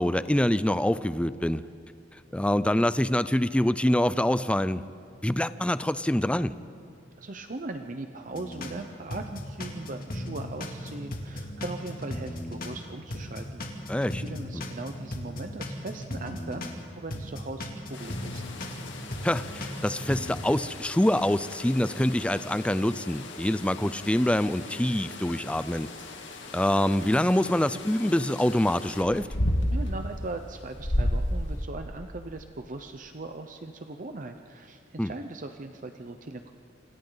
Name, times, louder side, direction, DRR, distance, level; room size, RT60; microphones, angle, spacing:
voice 1, 0.0-1.6 2.3-4.8 5.2-6.6 13.9-14.2 14.5-14.6 19.2-25.9 26.5-29.3 35.0-35.1, left 1 dB, 5° left, 14 dB, 0.4 m, -25 dB
voice 2, 7.2-13.6 14.1-18.4 29.7-36.5, right 2 dB, 45° right, 6 dB, 0.8 m, -39 dB
sound 1, 8.3-8.8 9.1-12.8 13.1-16.8 17.1-20.4, left 1 dB, 50° left, 2.7 m, -37 dB
sound 2, 17.9-31.6, left 1 dB, 80° left, 2.1 m, -34 dB
28.5 x 26.0 x 4.0 m, 2.4 s
head